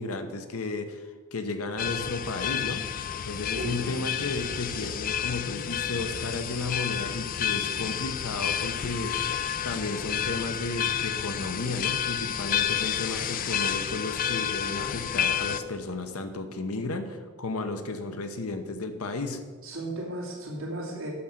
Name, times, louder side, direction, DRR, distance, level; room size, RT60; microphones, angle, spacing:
voice 1, 0.0-2.8 3.2-9.4 9.6-19.4, left 3 dB, 80° left, 8 dB, 0.9 m, -33 dB
sound 1, 1.8-15.6, left 9 dB, 40° left, 0.4 m, -30 dB
voice 2, 3.5-3.9 19.6-21.1, right 1 dB, 65° right, -2 dB, 2.4 m, -35 dB
8.5 x 6.4 x 5.8 m, 1.4 s
head